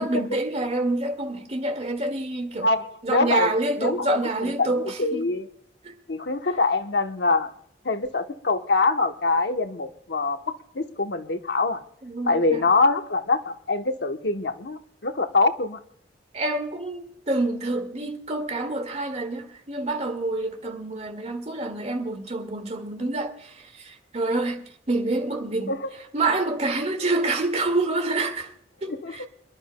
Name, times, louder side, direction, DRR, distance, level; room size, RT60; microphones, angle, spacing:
voice 1, 0.0-2.7 3.0-5.3 5.8-5.9 12.0-12.6 16.3-23.5 23.8-25.7 26.1-28.5 28.8-29.2, right 2 dB, 40° right, 1.9 m, -27 dB
voice 2, 2.6-3.5 3.8-5.5 6.1-7.5 7.8-11.8 12.3-15.8 25.7-25.9 28.9-29.3, left 3 dB, 70° left, 1.0 m, -24 dB
27.5 x 11.5 x 2.2 m
head